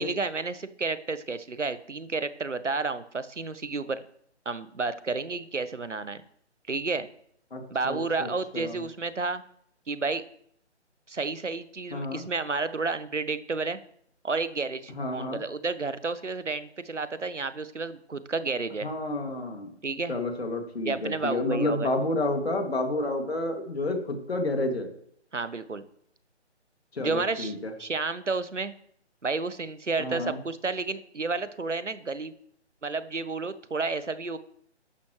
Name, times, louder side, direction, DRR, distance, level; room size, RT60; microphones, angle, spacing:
voice 1, 0.0-4.0 4.4-6.2 6.7-7.1 7.7-9.4 9.9-10.2 11.1-13.8 14.2-18.9 19.8-20.1 20.8-21.9 25.3-25.8 27.0-28.7 29.2-32.3 32.8-34.4, right 3 dB, 85° right, 14 dB, 1.1 m, -31 dB
voice 2, 7.5-8.8 11.9-12.2 14.9-15.4 18.8-19.7 20.1-24.9 26.9-27.7 30.0-30.4, left 2 dB, 60° left, 4 dB, 2.5 m, -30 dB
12.0 x 11.5 x 3.2 m, 0.66 s
figure-of-eight pair, 150°, 35 cm